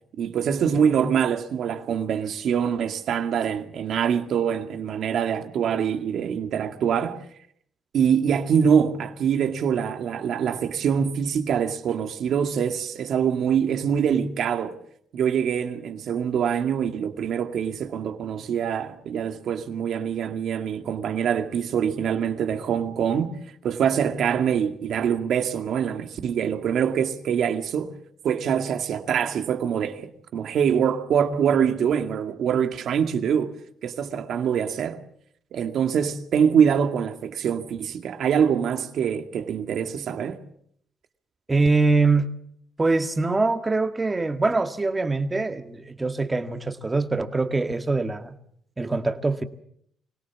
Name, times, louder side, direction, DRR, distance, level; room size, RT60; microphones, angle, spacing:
voice 1, 0.2-7.2 7.9-14.8 15.1-23.4 23.6-27.9 28.2-33.5 33.8-35.0 35.5-40.4, right 8 dB, 70° right, 2.1 m, -24 dB
voice 2, 41.5-42.3 42.8-48.3 48.8-49.4, right 3 dB, 20° right, 1.9 m, -23 dB
25.0 x 17.5 x 7.3 m
cardioid pair, 90°, 0 cm